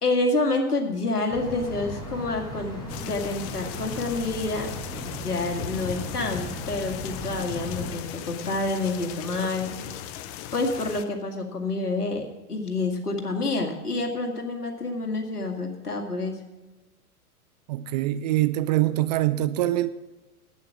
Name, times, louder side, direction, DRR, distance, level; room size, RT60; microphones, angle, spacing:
voice 1, 0.0-4.7 5.0-9.7 10.5-16.4, left 2 dB, 85° left, 3 dB, 2.1 m, -28 dB
sound 1, 1.3-8.0, equal, 10° left, 5.1 m, -37 dB
sound 2, 2.9-11.0, left 11 dB, 30° left, 0.7 m, -38 dB
voice 2, 17.7-19.9, right 15 dB, 30° right, 13 dB, 0.4 m, -24 dB
11.5 x 9.1 x 5.9 m, 1.1 s
figure-of-eight pair, 95°, 45 cm